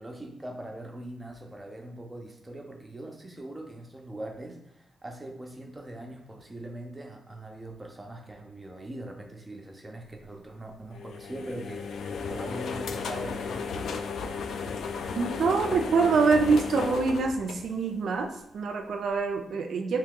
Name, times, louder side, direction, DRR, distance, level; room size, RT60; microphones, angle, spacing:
voice 1, 0.0-14.1, right 1 dB, 15° right, 1 dB, 0.5 m, -41 dB
sound 1, 10.9-18.2, left 5 dB, 75° left, 0.3 m, -35 dB
voice 2, 15.1-20.0, right 4 dB, 60° right, 6 dB, 0.4 m, -25 dB
2.9 x 2.8 x 3.6 m, 0.81 s
wide cardioid pair, 175°, 0 cm